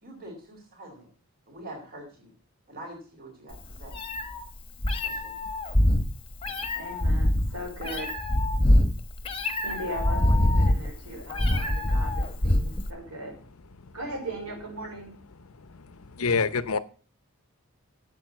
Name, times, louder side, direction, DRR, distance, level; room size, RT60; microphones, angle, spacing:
voice 1, 0.0-1.1 1.5-2.3 2.7-4.0 5.0-5.3, right 1 dB, 45° right, 4.4 m, -44 dB
Meow, 3.5-12.9, left 1 dB, 25° left, 1.2 m, -24 dB
voice 2, 6.8-8.1 9.6-13.4 13.9-15.2, right 1 dB, 85° right, 5.1 m, -38 dB
voice 3, 16.2-16.8, left 5 dB, 80° left, 0.8 m, -25 dB
8.9 x 8.5 x 7.0 m
head